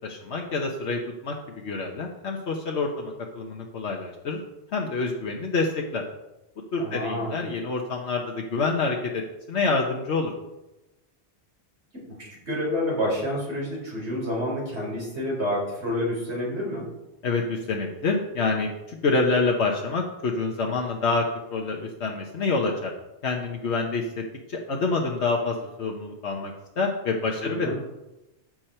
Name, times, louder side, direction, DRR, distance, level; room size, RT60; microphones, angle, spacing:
voice 1, 0.0-4.4 4.7-6.0 6.7-9.2 9.5-10.3 17.2-21.2 21.5-22.9 23.2-24.2 24.5-27.7, left 3 dB, 80° left, 0 dB, 1.3 m, -27 dB
voice 2, 6.8-7.4 12.1-16.9 27.4-27.8, equal, 75° right, -5 dB, 5.0 m, -29 dB
14.0 x 6.3 x 4.4 m, 0.97 s
omnidirectional pair, 1.1 m